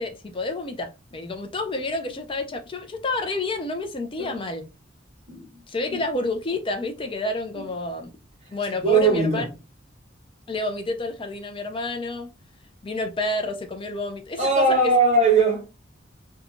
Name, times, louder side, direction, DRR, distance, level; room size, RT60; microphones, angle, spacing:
voice 1, 0.0-4.6 5.7-8.1 8.5-9.4 10.5-12.3 12.8-14.9, left 2 dB, 25° left, 0.4 m, -29 dB
voice 2, 8.8-9.5 14.4-15.7, right 3 dB, 35° right, 1.3 m, -20 dB
2.8 x 2.3 x 2.7 m
head